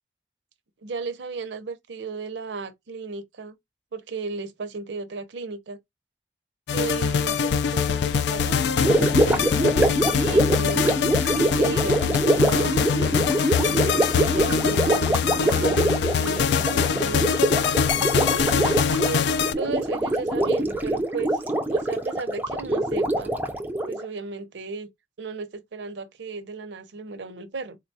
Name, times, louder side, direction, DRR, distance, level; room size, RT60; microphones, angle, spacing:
voice 1, 0.8-3.5 3.9-5.8 6.7-10.9 11.6-17.6 19.0-19.3 19.6-21.4 21.7-23.3 23.9-24.9 25.2-27.8, right 4 dB, 90° right, 0.6 m, -35 dB
sound 1, 6.7-19.5, left 7 dB, 75° left, 0.3 m, -23 dB
Gurgling, 8.8-24.1, right 1 dB, 10° right, 0.4 m, -24 dB
3.9 x 2.2 x 2.6 m
head